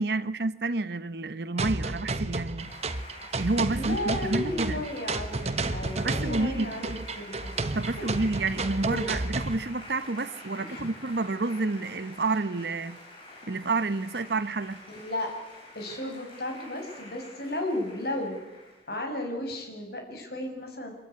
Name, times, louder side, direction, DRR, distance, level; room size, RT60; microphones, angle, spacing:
voice 1, 0.0-2.7 3.4-4.8 6.0-7.0 7.7-13.0 13.5-14.8, right 3 dB, 60° right, 0.9 m, -29 dB
sound 1, 1.6-9.6, right 3 dB, 35° right, 1.2 m, -32 dB
sound 2, 2.6-19.0, left 2 dB, 30° left, 7.0 m, -47 dB
voice 2, 3.7-7.5 8.8-9.1 10.5-10.9 14.9-15.3 15.7-18.4 18.9-20.9, left 1 dB, 55° left, 6.2 m, -34 dB
25.5 x 22.0 x 9.6 m
head